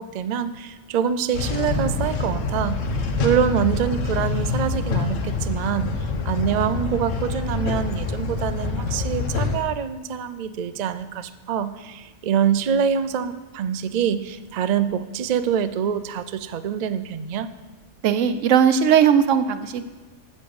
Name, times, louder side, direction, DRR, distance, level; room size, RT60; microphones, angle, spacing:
voice 1, 0.0-2.8 3.2-5.9 6.2-17.5, right 8 dB, 55° right, 12 dB, 0.5 m, -25 dB
sound 1, 1.3-9.6, left 4 dB, 80° left, 1.3 m, -26 dB
voice 2, 18.0-19.9, right 8 dB, 85° right, 11 dB, 1.0 m, -18 dB
9.7 x 7.6 x 7.0 m, 1.3 s
omnidirectional pair, 1.3 m